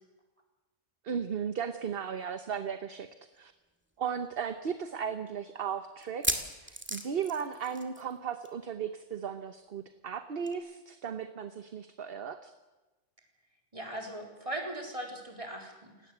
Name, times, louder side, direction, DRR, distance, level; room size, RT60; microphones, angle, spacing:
voice 1, 1.0-3.1 3.4-3.5 4.0-12.5, right 7 dB, 50° right, 9 dB, 1.1 m, -36 dB
sound 1, 3.4-3.5 3.8-3.9 4.5-4.6 6.0-8.2 8.4-8.6 8.9-9.0 10.5-10.6, right 1 dB, 10° right, 2.1 m, -35 dB
voice 2, 13.7-16.1, right 1 dB, 25° right, 2 dB, 4.2 m, -39 dB
29.0 x 17.5 x 7.9 m, 1.2 s
omnidirectional pair, 1.3 m